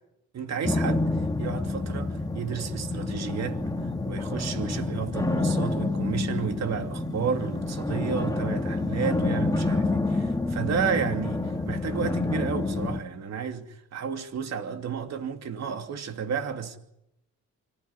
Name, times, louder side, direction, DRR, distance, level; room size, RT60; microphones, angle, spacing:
voice 1, 0.3-1.1 1.4-3.6 4.1-16.8, right 6 dB, 60° right, 2.8 m, -32 dB
sound 1, 0.6-13.0, left 2 dB, 10° left, 1.7 m, -28 dB
25.0 x 15.5 x 9.8 m
cardioid pair, 90°, 30 cm